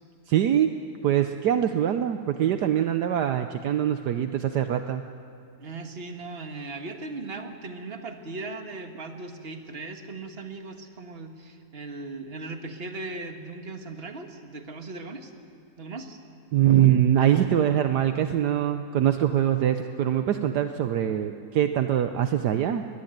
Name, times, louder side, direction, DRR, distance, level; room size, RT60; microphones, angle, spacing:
voice 1, 0.3-0.8 1.0-5.0 16.5-22.9, right 10 dB, 70° right, 8 dB, 1.3 m, -23 dB
voice 2, 5.6-15.3 15.8-16.2, right 3 dB, 35° right, 5 dB, 1.8 m, -38 dB
22.0 x 20.0 x 9.0 m, 2.7 s
omnidirectional pair, 1.9 m